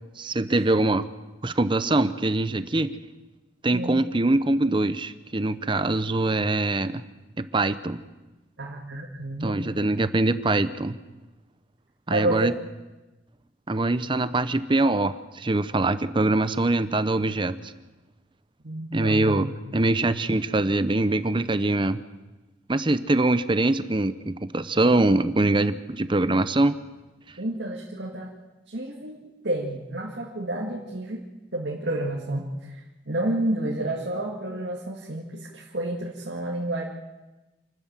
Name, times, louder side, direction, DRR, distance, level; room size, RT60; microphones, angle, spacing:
voice 1, 0.2-1.1 1.4-3.0 3.6-7.0 7.4-8.0 9.4-11.0 12.1-12.5 13.7-17.5 18.9-22.0 22.7-26.8, right 2 dB, 25° right, 13 dB, 0.7 m, -23 dB
voice 2, 3.7-4.0 8.6-9.6 12.1-12.5 18.6-19.6 27.4-28.3 28.7-31.2 31.5-36.8, right 1 dB, 70° right, -2 dB, 2.2 m, -30 dB
27.5 x 13.0 x 7.6 m, 1.1 s
head